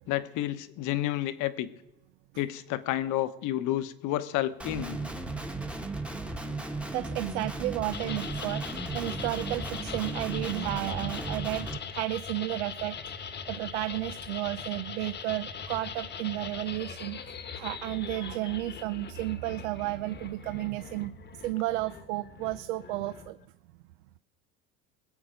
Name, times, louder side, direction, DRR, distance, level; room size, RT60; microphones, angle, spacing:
voice 1, 0.1-1.7 2.4-5.0, left 14 dB, 60° left, 12 dB, 1.1 m, -30 dB
Guitar, 4.6-11.8, right 2 dB, 5° right, 1.2 m, -36 dB
voice 2, 6.9-8.6 8.9-11.7 11.9-13.0 13.5-23.4, right 17 dB, 80° right, 12 dB, 0.6 m, -33 dB
sound 1, 7.9-23.4, left 6 dB, 30° left, 1.1 m, -41 dB
21.0 x 8.0 x 5.2 m, 0.99 s
supercardioid pair, 105°, 35 cm